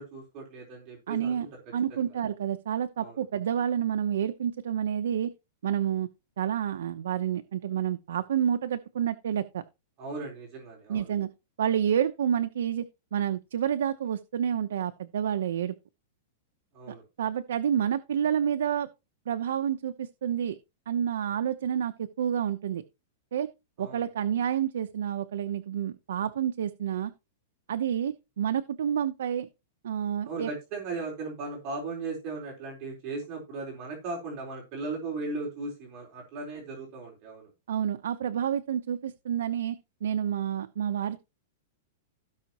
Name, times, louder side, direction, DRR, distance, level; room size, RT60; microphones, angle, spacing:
voice 1, 0.0-1.5 1.9-2.0 3.0-3.2 10.0-11.1 16.7-17.0 23.8-24.0 30.2-37.5, right 3 dB, 30° right, 4.1 m, -37 dB
voice 2, 1.1-1.5 1.7-5.3 5.6-6.1 6.4-9.6 10.9-11.3 11.6-15.7 17.2-18.9 19.3-20.5 20.9-22.8 23.3-23.5 23.8-27.1 27.7-29.5 29.8-30.5 37.7-39.8 40.0-41.2, right 9 dB, 85° right, 0.9 m, -29 dB
16.5 x 5.8 x 3.0 m
supercardioid pair, 170°, 0 cm